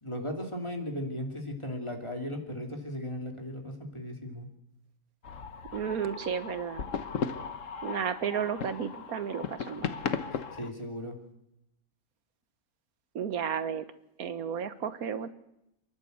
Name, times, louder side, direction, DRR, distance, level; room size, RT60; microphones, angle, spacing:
voice 1, 0.0-4.5 10.3-11.2, left 1 dB, 20° left, 3 dB, 2.9 m, -37 dB
sound 1, 5.2-10.7, left 6 dB, 65° left, 1.4 m, -36 dB
voice 2, 5.7-6.8 7.8-9.9 13.1-13.8 14.2-15.3, right 7 dB, 85° right, 12 dB, 1.5 m, -33 dB
28.5 x 11.5 x 8.1 m, 0.82 s
omnidirectional pair, 1.5 m